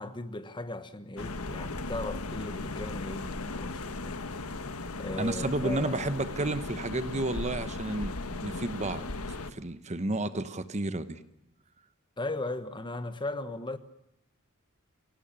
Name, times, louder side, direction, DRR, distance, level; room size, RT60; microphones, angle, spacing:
voice 1, 0.0-4.2 5.0-5.9 12.2-13.8, left 2 dB, 20° left, 1.2 m, -37 dB
sound 1, 1.2-9.5, left 2 dB, 90° left, 1.4 m, -37 dB
voice 2, 5.2-8.2 8.4-9.0 9.5-11.2, right 2 dB, 30° right, 1.1 m, -31 dB
26.0 x 17.5 x 9.0 m
head